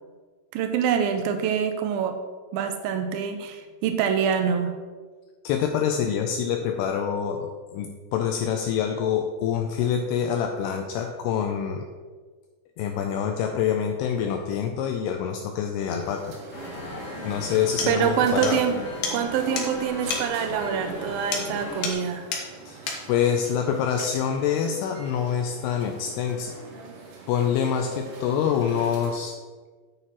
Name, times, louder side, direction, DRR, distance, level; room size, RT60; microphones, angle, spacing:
voice 1, 0.5-2.2 2.5-4.8 17.9-18.8 19.1-22.3, right 7 dB, 85° right, 6 dB, 2.1 m, -25 dB
voice 2, 5.4-11.9 12.8-16.4 17.2-18.6 22.7-22.8 23.1-26.6 27.3-29.4, left 8 dB, 80° left, 4 dB, 2.5 m, -26 dB
sound 1, 16.0-29.3, right 2 dB, 70° right, 3.4 m, -44 dB
sound 2, 16.5-21.9, left 1 dB, 45° left, 2.1 m, -37 dB
sound 3, 17.2-17.3 17.8-17.9 18.4-18.6 19.0-19.2 19.6-19.7 20.1-20.3 21.3-21.5 21.8-22.0 22.3-22.4 22.9-23.0, left 5 dB, 60° left, 2.5 m, -29 dB
9.7 x 8.8 x 3.1 m, 1.4 s
omnidirectional pair, 4.9 m